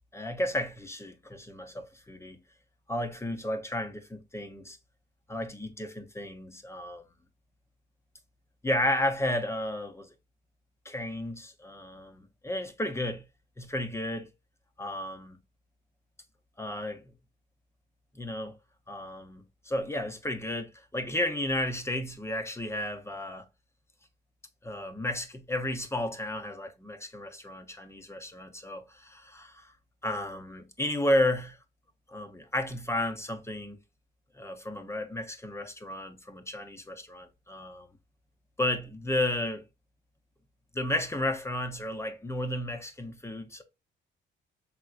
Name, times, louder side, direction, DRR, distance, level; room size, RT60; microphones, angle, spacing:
voice 1, 0.1-2.4 2.9-4.8 5.3-7.0 8.6-10.1 10.8-13.2 13.6-14.3 14.8-15.4 16.6-17.1 18.1-18.5 18.9-23.5 24.6-29.7 30.0-31.6 32.1-33.8 34.3-37.9 38.6-39.7 40.7-43.6, left 1 dB, 15° left, 0.9 m, -33 dB
4.7 x 3.7 x 2.4 m
cardioid pair, 90°, 20 cm